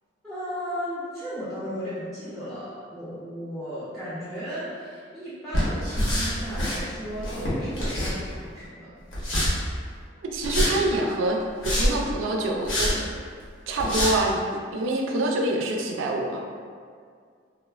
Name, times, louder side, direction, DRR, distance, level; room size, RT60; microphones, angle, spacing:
voice 1, 0.2-9.0, equal, ahead, -14 dB, 0.4 m, -35 dB
sound 1, 5.5-6.8 7.2-8.5 9.1-9.5 10.4-10.7 11.4-12.0 12.7-12.9 13.4-13.5 13.8-14.1, equal, 75° left, 0.8 m, -25 dB
voice 2, 10.2-11.4 11.6-13.0 13.7-14.4 14.7-16.4, right 2 dB, 85° right, 1 dB, 0.3 m, -26 dB
3.0 x 2.0 x 2.3 m, 2.1 s
head